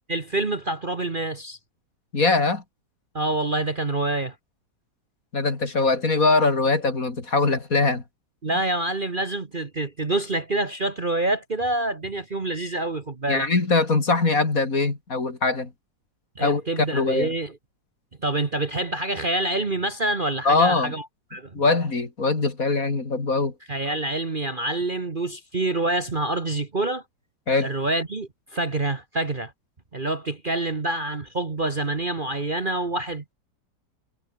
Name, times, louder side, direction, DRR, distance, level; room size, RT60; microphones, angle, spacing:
voice 1, 0.1-1.6 3.1-4.3 8.4-13.5 16.4-17.5 18.2-21.0 21.3-21.6 23.7-27.0 27.6-29.5 29.9-33.3, right 2 dB, 30° right, 1.5 m, -27 dB
voice 2, 2.1-2.6 5.3-8.0 13.3-15.7 16.4-17.3 20.4-20.9 21.5-23.5 27.5-27.7, left 3 dB, 50° left, 3.6 m, -22 dB
omnidirectional pair, 1.9 m